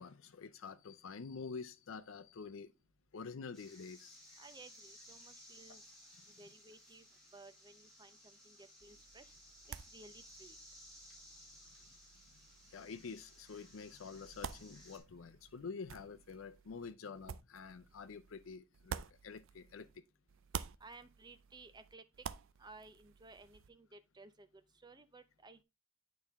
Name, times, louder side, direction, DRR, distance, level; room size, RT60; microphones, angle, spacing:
voice 1, 0.0-2.7 3.1-4.2 12.7-19.9, left 5 dB, 80° left, 0.5 m, -48 dB
sound 1, 3.5-15.0, equal, ahead, 2.9 m, -59 dB
voice 2, 4.4-5.8 6.4-7.1 7.3-9.3 9.7-10.6 20.8-22.0 22.6-25.6, right 3 dB, 20° right, 0.6 m, -57 dB
sound 2, 8.8-20.0 20.3-23.7, right 7 dB, 70° right, 0.4 m, -50 dB
8.6 x 4.2 x 3.5 m
head